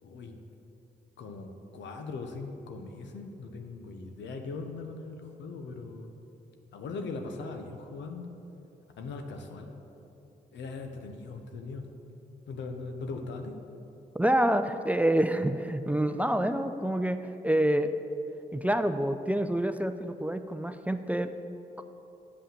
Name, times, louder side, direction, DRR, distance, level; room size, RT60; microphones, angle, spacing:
voice 1, 0.0-0.4 1.2-6.1 6.7-8.3 9.0-9.7 10.5-11.9 12.5-13.6, left 3 dB, 75° left, 5 dB, 0.9 m, -40 dB
voice 2, 14.1-17.9 18.5-21.3 21.8-21.9, right 1 dB, 10° right, 9 dB, 0.5 m, -27 dB
8.4 x 5.6 x 7.5 m, 2.9 s
supercardioid pair, 50°, 19 cm